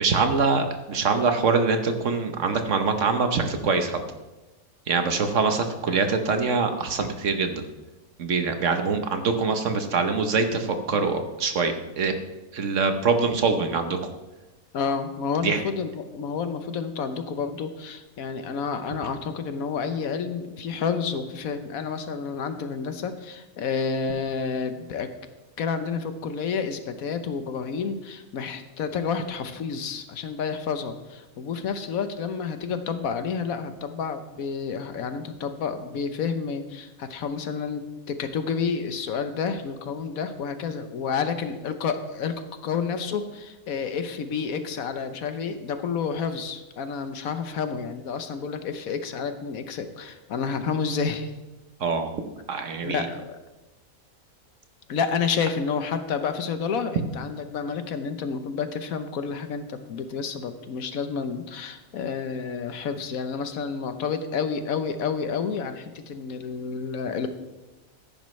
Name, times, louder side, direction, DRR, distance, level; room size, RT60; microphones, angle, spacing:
voice 1, 0.0-4.0 4.9-7.6 8.2-12.1 12.5-14.0 15.4-15.6 51.8-52.1 52.5-53.0, right 4 dB, 55° right, 7 dB, 1.2 m, -24 dB
voice 2, 14.7-25.1 25.6-42.3 42.6-51.3 52.8-53.4 54.9-67.3, left 6 dB, 70° left, 9 dB, 1.2 m, -30 dB
14.0 x 10.5 x 3.2 m, 1.1 s
omnidirectional pair, 1.6 m